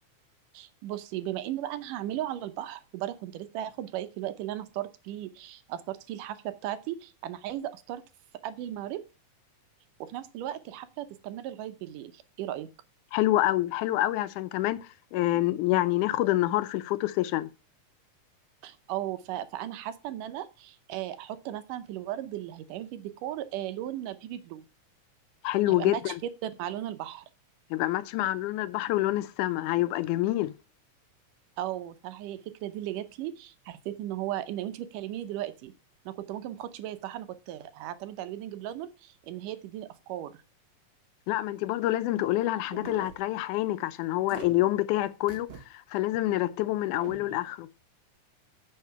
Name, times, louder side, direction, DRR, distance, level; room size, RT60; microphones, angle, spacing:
voice 1, 0.5-8.0 8.4-9.0 10.0-12.7 18.6-24.6 25.7-26.1 26.4-27.3 31.6-35.7 36.1-40.3, right 12 dB, 80° right, 2.4 m, -36 dB
voice 2, 13.1-14.8 15.1-17.5 25.4-26.2 27.7-30.5 41.3-47.7, left 16 dB, 80° left, 2.1 m, -27 dB
sound 1, 42.7-43.2 44.3-44.5 45.3-45.6 46.0-46.1 46.9-47.4, right 5 dB, 55° right, 2.4 m, -43 dB
9.4 x 5.6 x 5.6 m
omnidirectional pair, 3.7 m